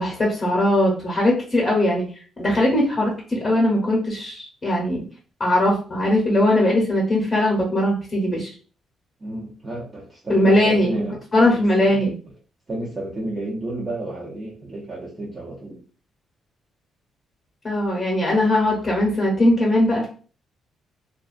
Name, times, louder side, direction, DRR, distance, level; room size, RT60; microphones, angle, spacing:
voice 1, 0.0-2.0 2.4-5.0 5.4-8.5 10.3-11.0 11.3-12.1 17.6-20.1, left 1 dB, 30° left, -2 dB, 0.8 m, -20 dB
voice 2, 9.2-11.2 11.9-12.0 12.7-15.8, right 1 dB, 30° right, -5 dB, 0.6 m, -31 dB
2.3 x 2.3 x 2.4 m, 0.39 s
cardioid pair, 90°, 0 cm